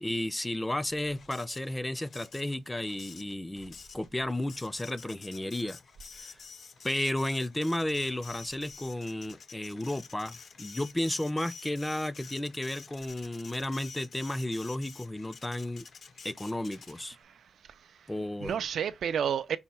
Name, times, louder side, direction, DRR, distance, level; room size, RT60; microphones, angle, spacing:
voice 1, 0.0-5.8 6.1-6.4 6.8-15.9 16.2-17.2 18.1-18.6, left 1 dB, 10° left, 0.4 m, -33 dB
Printer, 1.1-17.2, left 5 dB, 60° left, 0.6 m, -50 dB
voice 2, 17.2-18.1 18.4-19.6, right 8 dB, 80° right, 0.4 m, -32 dB
5.4 x 2.2 x 4.2 m
cardioid pair, 95°, 0 cm